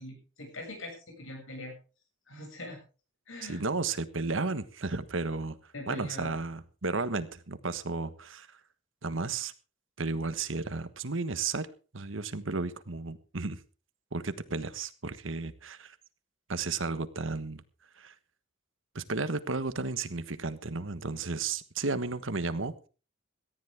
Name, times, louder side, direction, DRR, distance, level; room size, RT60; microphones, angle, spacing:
voice 1, 0.0-1.7 2.3-2.8 3.3-3.6 5.7-6.4, left 2 dB, 85° left, 3 dB, 7.6 m, -42 dB
voice 2, 3.4-5.6 5.9-8.5 9.0-9.5 10.0-11.7 11.9-13.6 14.1-15.9 16.5-17.6 18.0-18.1 18.9-22.7, right 3 dB, 80° right, 13 dB, 1.4 m, -33 dB
18.0 x 13.5 x 3.6 m, 0.35 s
head